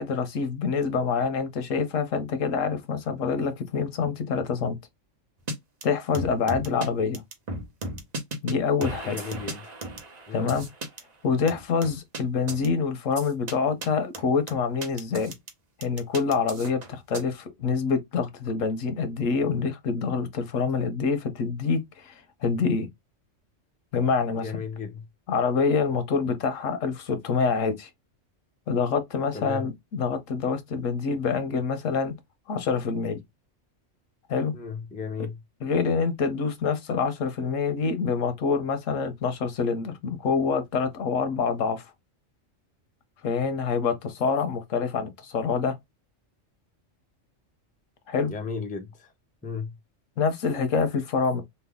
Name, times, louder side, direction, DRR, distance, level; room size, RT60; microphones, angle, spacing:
voice 1, 0.0-4.8 5.8-7.2 8.4-9.2 10.3-10.7 11.2-15.3 15.8-22.9 23.9-24.6 25.3-27.9 28.7-32.1 32.5-33.2 34.3-34.5 35.6-41.9 43.2-45.8 48.1-48.3 50.2-51.4, left 5 dB, 90° left, 1.2 m, -26 dB
sound 1, 5.5-5.6 5.8-5.9 6.1-6.9 7.1-8.5 8.8-11.0 11.5-12.2 12.5-12.7 13.2-13.5 13.8-13.9 14.1-15.5 15.8-17.2, right 1 dB, 40° right, 0.8 m, -35 dB
voice 2, 9.0-9.8 10.3-10.6 24.4-25.0 29.3-29.6 34.5-35.4 48.3-49.1 49.4-49.8, left 5 dB, 15° left, 0.3 m, -35 dB
3.2 x 2.2 x 3.4 m
omnidirectional pair, 1.3 m